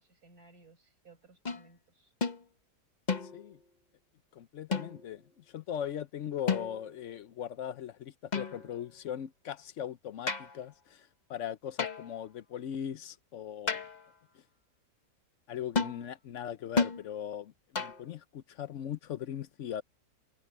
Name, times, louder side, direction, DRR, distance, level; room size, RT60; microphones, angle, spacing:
voice 1, 0.0-2.1, right 3 dB, 60° right, 5.8 m, -60 dB
sound 1, 1.5-1.7 2.2-2.4 3.1-3.6 4.7-5.2 6.5-7.0 8.3-8.9 10.3-10.6 11.8-12.2 13.7-14.1 15.8-16.0 16.8-17.0 17.8-18.1, left 4 dB, 30° left, 1.2 m, -33 dB
voice 2, 4.3-13.8 15.5-19.8, left 9 dB, 60° left, 0.8 m, -39 dB
omnidirectional pair, 1.8 m